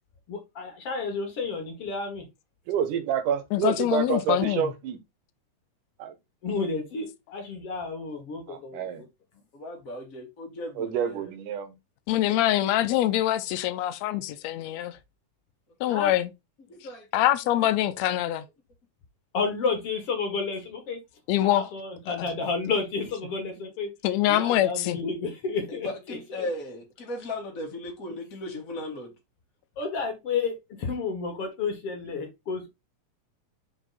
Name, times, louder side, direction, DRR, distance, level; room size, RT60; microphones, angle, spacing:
voice 1, 0.3-2.3 6.4-9.1 15.9-16.1 19.3-21.0 21.4-23.9 24.3-26.5 29.8-32.7, left 4 dB, 50° left, 2.4 m, -31 dB
voice 2, 2.7-5.0 6.0-6.2 8.5-9.0 10.8-11.7, right 7 dB, 80° right, 2.5 m, -28 dB
voice 3, 3.5-4.7 12.1-15.0 15.8-16.3 17.1-18.5 21.3-21.7 22.1-22.3 24.0-25.0, left 13 dB, 75° left, 1.7 m, -24 dB
voice 4, 9.5-11.2 14.1-14.9 15.8-16.0 16.7-17.2 17.6-18.1 25.7-29.1, left 1 dB, 30° left, 1.9 m, -38 dB
5.4 x 5.0 x 4.0 m
omnidirectional pair, 3.6 m